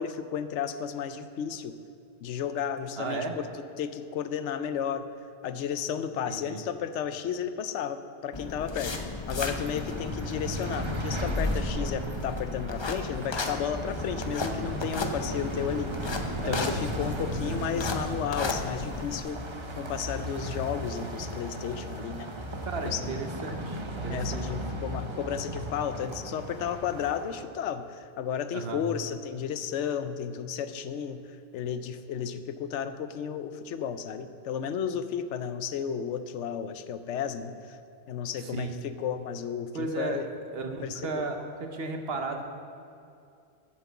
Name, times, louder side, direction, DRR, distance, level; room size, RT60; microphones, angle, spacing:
voice 1, 0.0-1.8 2.2-5.1 5.4-9.0 9.3-19.4 19.8-22.3 22.8-23.1 24.1-31.2 31.5-37.8 38.1-40.3 40.8-41.3, left 8 dB, 80° left, 11 dB, 0.9 m, -33 dB
voice 2, 3.0-3.3 6.2-6.6 16.4-16.8 22.7-24.7 28.5-28.8 38.4-38.8 39.7-40.3 40.5-42.4, right 3 dB, 60° right, 5 dB, 1.1 m, -35 dB
sound 1, 8.3-19.2, left 3 dB, 30° left, 0.5 m, -34 dB
sound 2, 9.3-27.4, right 1 dB, 30° right, 0.8 m, -36 dB
8.3 x 7.5 x 7.1 m, 2.5 s
omnidirectional pair, 1.2 m